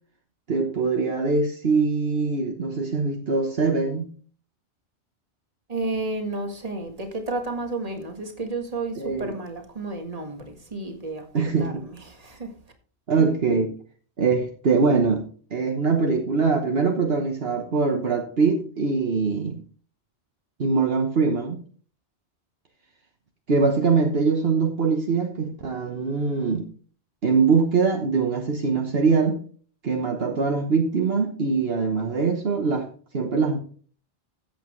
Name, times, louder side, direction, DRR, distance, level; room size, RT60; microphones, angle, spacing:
voice 1, 0.5-4.1 9.0-9.3 11.3-11.8 13.1-13.7 14.2-15.3 15.5-19.6 20.6-21.6 23.5-26.7 27.2-29.4 29.8-32.9 33.1-33.6, right 4 dB, 60° right, 3 dB, 1.4 m, -23 dB
voice 2, 5.7-11.3 11.6-11.7 12.1-12.5, right 2 dB, 35° right, 4 dB, 1.8 m, -31 dB
14.0 x 8.5 x 3.2 m, 0.43 s
omnidirectional pair, 1.2 m